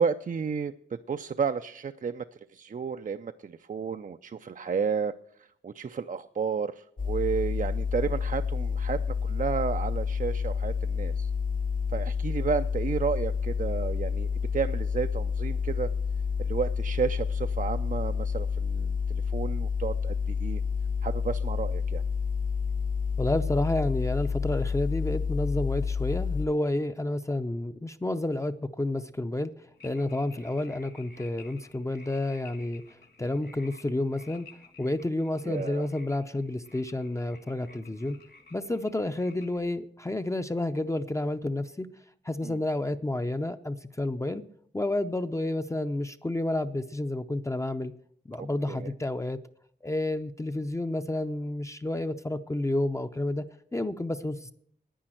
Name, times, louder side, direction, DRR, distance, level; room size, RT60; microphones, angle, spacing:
voice 1, 0.0-2.2 2.5-11.3 11.9-15.9 16.4-20.6 21.0-22.0 35.4-35.9 42.4-42.6 48.4-48.9, right 6 dB, 45° right, 10 dB, 0.4 m, -32 dB
sound 1, 7.0-26.5, left 6 dB, 50° left, 0.8 m, -29 dB
voice 2, 23.2-29.5 29.8-32.8 33.2-34.5 34.8-38.2 38.5-41.9 42.2-44.4 44.7-47.9 48.3-49.4 49.8-53.5 53.7-54.5, left 1 dB, 15° left, 8 dB, 0.6 m, -30 dB
sound 2, 29.7-39.6, left 4 dB, 65° left, 2.2 m, -54 dB
10.0 x 9.7 x 7.7 m, 0.66 s
wide cardioid pair, 110°, 18 cm